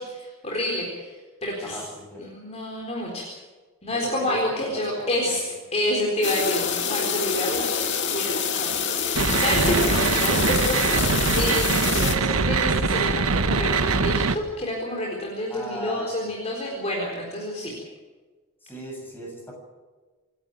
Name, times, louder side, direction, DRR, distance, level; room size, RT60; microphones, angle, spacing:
voice 1, 0.0-1.8 2.2-3.3 3.8-5.4 5.7-17.7, left 1 dB, 30° left, -2 dB, 4.1 m, -29 dB
voice 2, 1.6-2.3 3.9-5.4 9.8-10.1 15.5-16.3 18.6-19.5, equal, 10° left, -1 dB, 7.4 m, -37 dB
sound 1, 6.2-12.1, left 7 dB, 55° left, 2.3 m, -26 dB
sound 2, 9.1-14.4, right 4 dB, 75° right, 1.2 m, -22 dB
27.0 x 12.0 x 9.2 m, 1.3 s
head